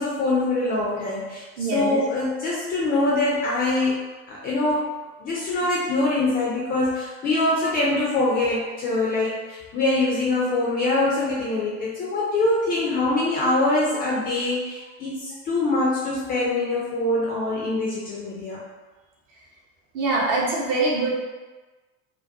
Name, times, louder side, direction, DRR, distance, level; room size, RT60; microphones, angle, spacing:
voice 1, 0.0-4.9 5.2-18.6, left 2 dB, 25° left, -5 dB, 0.3 m, -24 dB
voice 2, 1.6-1.9 19.9-21.1, right 2 dB, 50° right, -4 dB, 0.8 m, -23 dB
2.3 x 2.2 x 2.4 m, 1.3 s
figure-of-eight pair, 65°, 41 cm